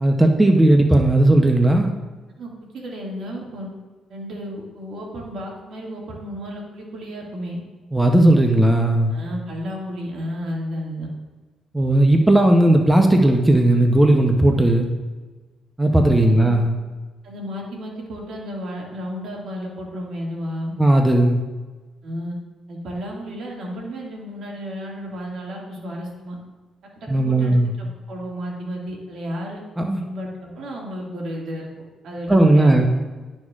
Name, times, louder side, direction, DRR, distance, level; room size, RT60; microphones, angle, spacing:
voice 1, 0.0-1.9 7.9-9.1 11.7-14.9 15.8-16.7 20.8-21.4 27.1-27.7 29.8-30.0 32.3-32.9, right 1 dB, 10° right, 3 dB, 0.7 m, -16 dB
voice 2, 2.4-3.7 4.1-7.6 9.1-11.1 16.2-16.5 17.2-20.7 22.0-22.4 22.7-26.4 27.1-29.6 30.0-31.7 32.0-32.9, equal, 70° right, -2 dB, 2.1 m, -32 dB
11.0 x 6.3 x 2.5 m, 1.3 s
cardioid pair, 90°, 0 cm